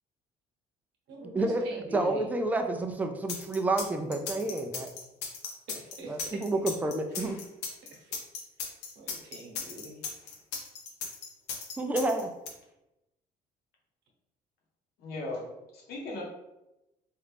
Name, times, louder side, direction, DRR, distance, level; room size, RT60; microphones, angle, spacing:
voice 1, 1.1-2.2 5.7-6.4 7.9-8.2 8.6-8.7 9.0-10.0, right 1 dB, 80° right, 0 dB, 0.9 m, -44 dB
voice 2, 1.9-4.9 6.1-7.4 11.8-12.3, right 2 dB, 10° right, 5 dB, 0.3 m, -29 dB
sound 1, 3.3-12.5, left 5 dB, 90° left, 0.7 m, -37 dB
voice 3, 15.0-16.2, left 2 dB, 70° left, -2 dB, 1.1 m, -38 dB
3.1 x 2.4 x 3.3 m, 0.93 s
cardioid pair, 110°, 17 cm